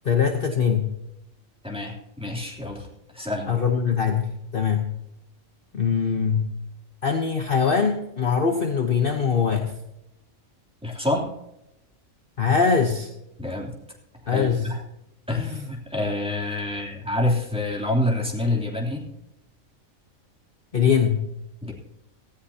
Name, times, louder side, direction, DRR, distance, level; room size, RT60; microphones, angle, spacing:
voice 1, 0.0-0.9 3.5-4.9 5.7-6.5 7.0-9.7 12.4-13.1 14.3-14.7 15.4-15.5 20.7-21.3, left 6 dB, 45° left, 4 dB, 1.1 m, -22 dB
voice 2, 1.6-2.9 3.1-3.5 10.8-11.3 13.4-13.7 14.2-14.8 15.3-19.0 21.6-21.7, left 1 dB, 5° right, -2 dB, 3.0 m, -27 dB
18.0 x 14.5 x 2.8 m, 0.86 s
omnidirectional pair, 1.4 m